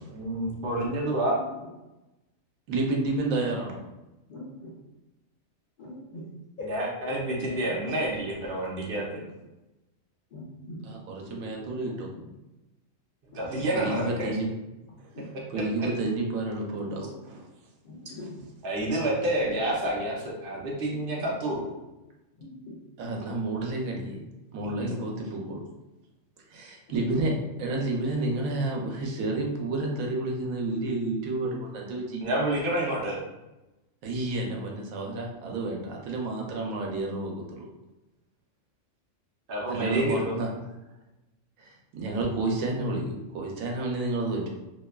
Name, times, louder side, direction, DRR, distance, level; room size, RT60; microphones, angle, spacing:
voice 1, 0.1-1.3 6.7-9.2 13.3-14.3 15.5-15.9 18.6-21.8 24.8-24.9 32.2-33.2 39.5-40.3, right 1 dB, 55° right, -3 dB, 0.7 m, -29 dB
voice 2, 2.7-3.8 10.9-12.1 13.5-14.5 15.5-17.5 23.0-24.2 24.5-25.6 26.5-27.3 27.6-32.2 34.0-37.7 39.7-40.5 41.6-44.5, right 2 dB, 90° right, 0 dB, 1.0 m, -30 dB
voice 3, 4.3-4.7 5.8-6.3 6.6-6.7 7.2-7.8 8.8-9.3 10.3-10.8 12.1-12.2 13.3-13.8 14.8-15.3 17.8-18.4 19.4-19.8 20.9-21.3 22.3-22.8 26.9-27.2 29.9-30.0, left 1 dB, 65° left, -5 dB, 0.5 m, -43 dB
2.7 x 2.2 x 2.2 m, 1.0 s
omnidirectional pair, 1.4 m